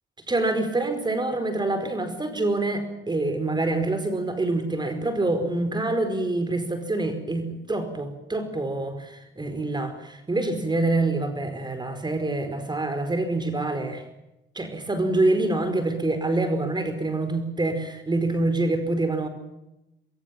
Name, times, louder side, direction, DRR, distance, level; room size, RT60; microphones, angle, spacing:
voice 1, 0.3-14.0 14.5-19.3, right 2 dB, 20° right, 9 dB, 4.8 m, -26 dB
24.0 x 23.0 x 7.6 m, 0.91 s
cardioid pair, 90°, 20 cm